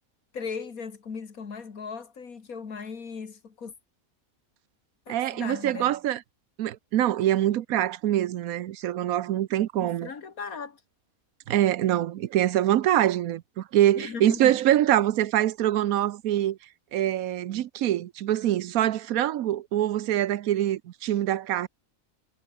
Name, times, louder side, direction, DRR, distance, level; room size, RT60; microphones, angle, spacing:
voice 1, 0.3-3.7 5.1-6.0 9.8-10.8 13.9-14.6, left 5 dB, 80° left, 2.5 m, -37 dB
voice 2, 5.1-6.2 6.6-10.1 11.5-16.6 16.9-21.7, right 12 dB, 80° right, 1.2 m, -24 dB
omnidirectional pair, 1.5 m